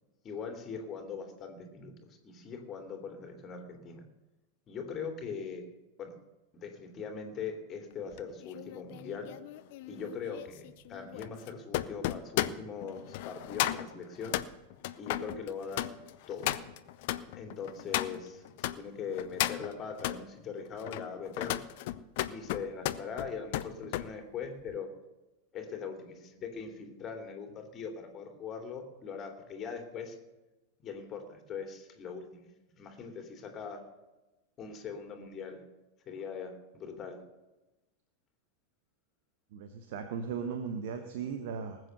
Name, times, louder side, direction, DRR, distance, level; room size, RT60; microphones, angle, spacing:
voice 1, 0.2-4.0 4.7-5.6 6.0-6.1 6.5-9.3 9.9-14.4 15.0-15.9 16.3-16.6 17.3-21.6 22.3-24.9 25.5-30.2 30.8-33.8 34.6-35.6 36.1-37.2, left 6 dB, 25° left, 4 dB, 2.8 m, -41 dB
sound 1, 8.1-18.8 19.2-20.2 20.7-24.1 24.4-24.7, left 15 dB, 50° left, 0.7 m, -35 dB
voice 2, 39.5-41.8, right 6 dB, 50° right, 7 dB, 1.2 m, -37 dB
19.5 x 8.1 x 6.7 m, 1.0 s
figure-of-eight pair, 90°, 0 cm